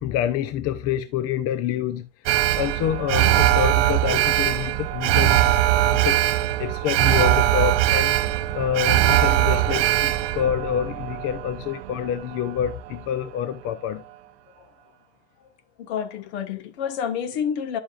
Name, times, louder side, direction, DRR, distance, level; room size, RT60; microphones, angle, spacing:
voice 1, 0.0-2.0 2.5-5.5 5.8-8.2 8.5-14.0, left 10 dB, 40° left, 0.7 m, -27 dB
Alarm, 2.3-12.5 12.9-13.0, right 14 dB, 55° right, 0.7 m, -21 dB
voice 2, 15.8-17.8, left 8 dB, 60° left, 1.5 m, -29 dB
10.5 x 7.1 x 2.5 m
hypercardioid pair, 90°, 36 cm